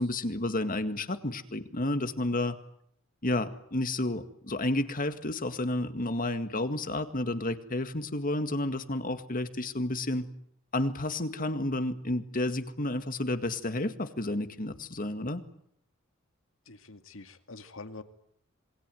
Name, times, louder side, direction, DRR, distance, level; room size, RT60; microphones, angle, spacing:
voice 1, 0.0-2.6 3.2-10.3 10.7-15.4, left 1 dB, 45° left, 10 dB, 2.0 m, -31 dB
voice 2, 16.7-18.0, left 3 dB, 80° left, 8 dB, 2.3 m, -45 dB
27.0 x 22.0 x 9.3 m, 0.67 s
head